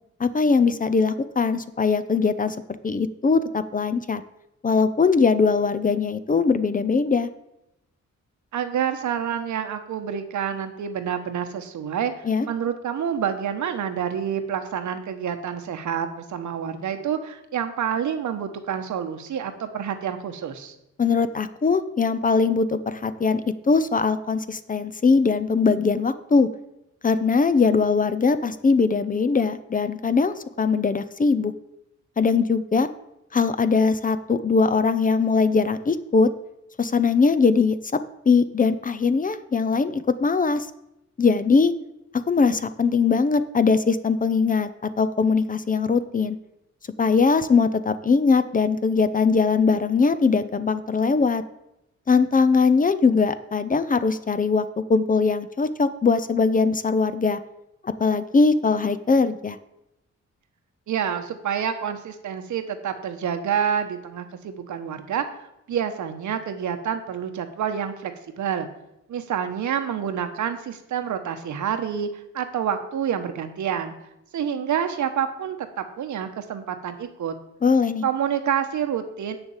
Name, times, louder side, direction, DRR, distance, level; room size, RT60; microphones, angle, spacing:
voice 1, 0.2-2.6 2.8-4.2 4.6-7.3 12.3-12.5 21.0-23.4 23.7-26.5 27.0-31.5 32.2-32.9 33.3-36.3 36.8-37.7 38.3-40.7 41.2-41.7 42.1-44.7 45.0-46.4 47.0-51.4 52.1-54.6 54.9-57.4 57.8-59.6 77.6-78.0, left 4 dB, 30° left, 13 dB, 0.6 m, -21 dB
voice 2, 8.5-20.7 60.9-65.2 65.7-68.7 69.1-72.1 72.3-73.9 74.3-77.4 78.0-79.4, right 8 dB, 90° right, 7 dB, 1.2 m, -28 dB
8.1 x 7.0 x 7.2 m, 0.86 s
wide cardioid pair, 120°, 29 cm